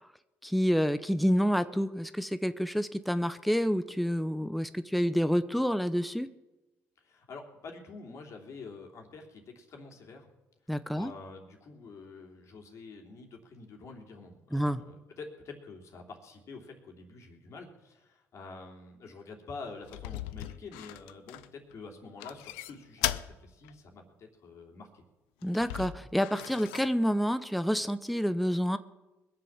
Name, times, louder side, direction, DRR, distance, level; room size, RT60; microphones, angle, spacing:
voice 1, 0.4-6.3 10.7-11.1 14.5-14.8 25.4-28.8, equal, ahead, 12 dB, 0.8 m, -28 dB
voice 2, 7.0-10.3 10.9-25.0, left 4 dB, 55° left, 2 dB, 3.2 m, -47 dB
sound 1, 19.8-21.7 22.2-23.3 23.6-23.7 25.4-26.9, left 15 dB, 90° left, 0.5 m, -37 dB
21.0 x 7.7 x 7.3 m, 1.1 s
supercardioid pair, 65°, 6 cm